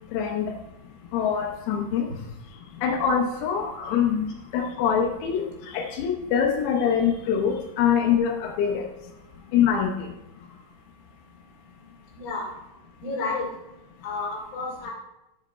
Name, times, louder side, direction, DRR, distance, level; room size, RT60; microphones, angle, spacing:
voice 1, 0.1-0.6 1.1-2.1 2.8-8.9 9.5-10.1, left 7 dB, 90° left, 1 dB, 3.7 m, -24 dB
voice 2, 13.0-13.5 14.0-14.9, left 3 dB, 40° left, -4 dB, 3.0 m, -30 dB
13.0 x 5.2 x 4.3 m, 0.92 s
omnidirectional pair, 6.0 m